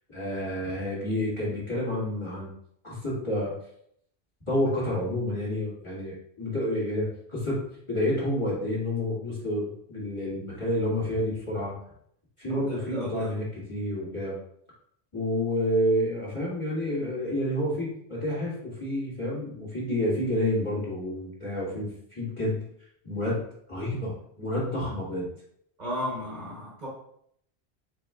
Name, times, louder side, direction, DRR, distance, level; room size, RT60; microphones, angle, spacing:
voice 1, 0.1-2.5 2.8-3.5 4.5-7.6 7.9-11.7 12.4-14.3 15.1-22.6 23.0-23.4 23.7-25.3, left 1 dB, 25° left, -8 dB, 2.1 m, -29 dB
voice 2, 12.5-13.3 25.8-26.9, equal, 45° right, -5 dB, 1.1 m, -34 dB
5.0 x 4.3 x 2.4 m, 0.70 s
omnidirectional pair, 1.1 m